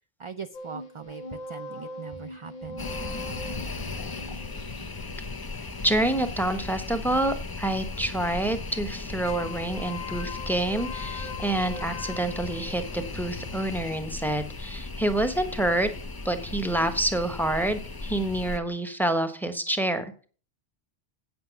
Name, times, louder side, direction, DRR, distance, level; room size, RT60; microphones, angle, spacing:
voice 1, 0.2-2.8, right 6 dB, 45° right, 9 dB, 0.4 m, -40 dB
sound 1, 0.5-5.9 9.2-13.2, left 3 dB, 50° left, 0.9 m, -41 dB
sound 2, 2.8-18.6, left 3 dB, 25° left, 0.6 m, -36 dB
voice 2, 5.8-15.9 16.2-20.3, right 1 dB, ahead, 9 dB, 1.0 m, -27 dB
8.8 x 7.8 x 5.9 m, 0.40 s
omnidirectional pair, 1.1 m